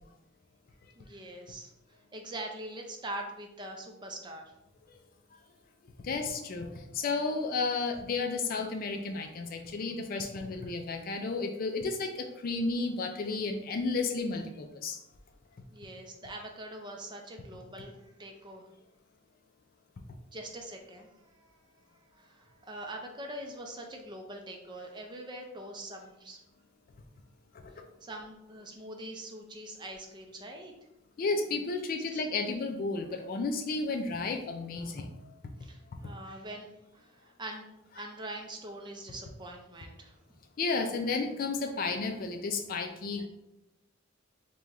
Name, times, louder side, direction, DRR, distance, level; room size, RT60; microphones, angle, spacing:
voice 1, 1.0-1.7 2.1-4.6 10.6-10.7 15.7-18.7 20.3-21.8 22.1-26.4 28.0-30.7 32.1-32.2 35.6-36.7 36.9-37.7 38.0-40.2, right 1 dB, 25° right, 2 dB, 0.5 m, -43 dB
voice 2, 6.0-15.0 27.5-27.7 31.2-35.1 36.0-36.1 40.6-43.3, left 3 dB, 50° left, 4 dB, 0.4 m, -32 dB
5.0 x 2.3 x 3.0 m, 0.86 s
head